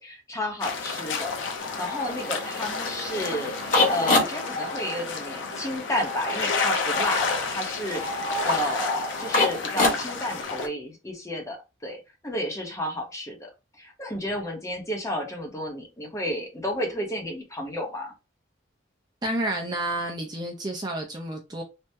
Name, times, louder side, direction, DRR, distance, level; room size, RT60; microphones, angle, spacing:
voice 1, 0.0-13.5 13.8-18.1, left 1 dB, 15° left, 0.8 m, -32 dB
sound 1, 0.6-10.7, left 4 dB, 65° left, 0.6 m, -31 dB
sound 2, 1.6-10.4, left 2 dB, 40° left, 1.1 m, -28 dB
voice 2, 19.2-21.6, right 1 dB, 20° right, 0.5 m, -30 dB
3.4 x 2.1 x 2.7 m
head